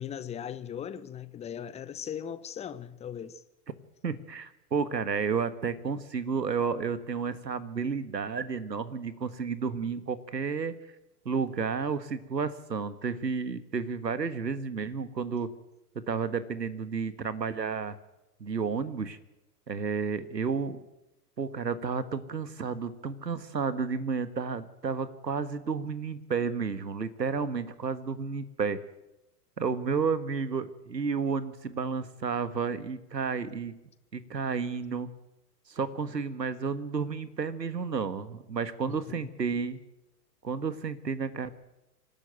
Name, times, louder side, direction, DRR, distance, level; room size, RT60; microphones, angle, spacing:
voice 1, 0.0-3.4 39.1-39.3, left 8 dB, 15° left, 0.8 m, -38 dB
voice 2, 4.0-10.8 11.2-15.5 16.1-18.0 18.4-19.2 19.7-20.8 21.4-28.8 29.6-33.8 34.1-35.1 35.7-39.8 40.4-41.5, right 5 dB, 85° right, 1.6 m, -31 dB
25.5 x 12.5 x 9.0 m
figure-of-eight pair, 100°, 49 cm